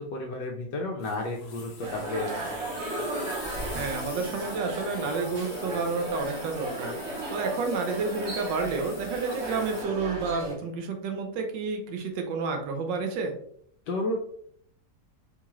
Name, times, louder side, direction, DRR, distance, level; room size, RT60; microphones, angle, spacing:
voice 1, 0.0-2.6 13.9-14.2, left 2 dB, 80° left, 0 dB, 1.2 m, -32 dB
sound 1, 1.0-9.8, left 4 dB, 55° left, 0.7 m, -45 dB
sound 2, 1.8-10.6, right 1 dB, 50° right, 1.0 m, -35 dB
voice 2, 3.7-13.3, right 4 dB, 90° right, 4 dB, 1.4 m, -30 dB
4.3 x 2.4 x 2.9 m, 0.64 s
omnidirectional pair, 1.9 m